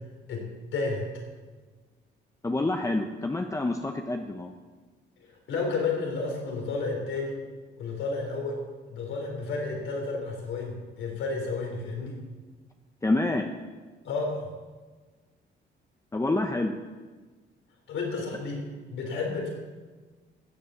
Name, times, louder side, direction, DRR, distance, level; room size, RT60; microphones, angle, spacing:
voice 1, 0.7-1.0 5.5-7.4 7.8-8.6 8.9-12.2 14.0-14.5 17.9-18.6 18.9-19.5, left 3 dB, 75° left, 1 dB, 4.0 m, -31 dB
voice 2, 2.4-4.5 13.0-13.5 16.1-16.7, left 2 dB, 15° left, 4 dB, 0.9 m, -27 dB
15.5 x 7.7 x 7.0 m, 1.4 s
cardioid pair, 90°, 20 cm